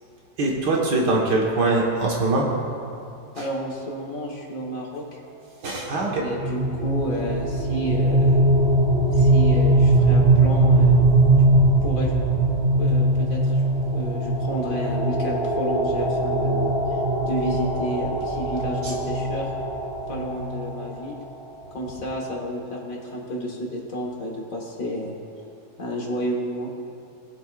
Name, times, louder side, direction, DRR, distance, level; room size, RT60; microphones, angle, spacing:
voice 1, 0.4-2.5 3.4-3.5 5.6-6.2 18.8-19.0, right 2 dB, 70° right, -2 dB, 2.0 m, -22 dB
voice 2, 3.4-5.2 6.1-8.4 9.1-11.0 11.8-12.1 12.8-13.6 13.9-19.5 20.1-21.2 21.7-25.2 25.8-26.7, equal, 50° left, -2 dB, 1.8 m, -31 dB
sound 1, 6.2-21.1, right 2 dB, 40° right, 1.4 m, -20 dB
20.5 x 7.9 x 2.5 m, 2.5 s
omnidirectional pair, 1.9 m